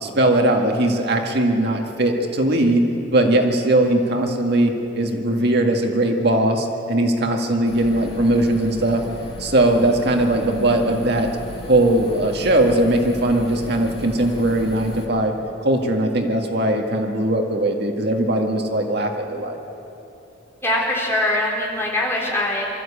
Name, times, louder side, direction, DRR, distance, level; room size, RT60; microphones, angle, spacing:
voice 1, 0.0-2.8 3.1-9.0 9.4-11.3 11.7-15.3 15.6-19.6, right 1 dB, 60° right, 2 dB, 1.9 m, -19 dB
sound 1, 7.7-15.0, left 1 dB, 30° left, 2.0 m, -36 dB
voice 2, 20.6-22.7, left 1 dB, 15° left, -4 dB, 4.1 m, -22 dB
23.5 x 13.5 x 8.6 m, 2.8 s
head